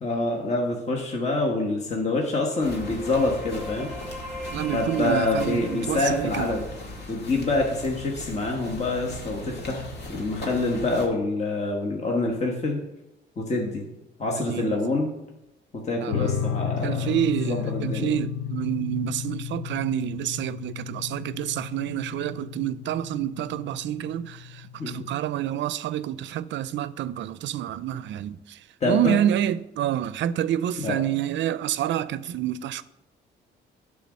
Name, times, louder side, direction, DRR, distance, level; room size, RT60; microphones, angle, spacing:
voice 1, 0.0-3.9 4.7-6.7 7.1-12.8 13.4-13.8 14.2-15.1 15.8-17.1 17.4-18.1 24.8-25.0 28.8-29.2 30.8-31.0, left 2 dB, 35° left, 1.3 m, -26 dB
sound 1, 1.9-7.6, equal, ahead, 1.6 m, -41 dB
sound 2, 2.6-11.1, left 1 dB, 55° left, 1.9 m, -39 dB
voice 2, 4.5-6.5 14.5-14.8 16.0-16.3 16.8-28.4 28.8-32.8, right 11 dB, 70° right, 0.4 m, -28 dB
sound 3, 16.1-25.1, left 8 dB, 85° left, 0.7 m, -33 dB
10.0 x 3.7 x 6.3 m
cardioid pair, 90°, 20 cm